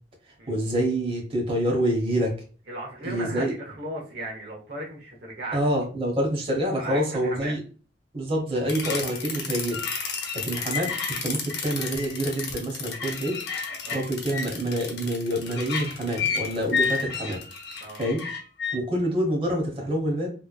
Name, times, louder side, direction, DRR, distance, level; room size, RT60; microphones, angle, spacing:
voice 1, 0.5-2.3 3.0-3.5 5.5-7.6 8.1-9.8 10.3-10.9 11.2-13.4 13.9-17.4 18.0-18.2 18.7-20.3, right 1 dB, 30° right, 0 dB, 1.1 m, -26 dB
voice 2, 2.7-5.7 6.8-7.5 13.8-14.0 17.8-18.0, right 1 dB, 60° right, -1 dB, 1.0 m, -36 dB
sound 1, 8.7-18.8, left 5 dB, 65° left, 0.9 m, -31 dB
3.4 x 3.0 x 2.3 m, 0.38 s
head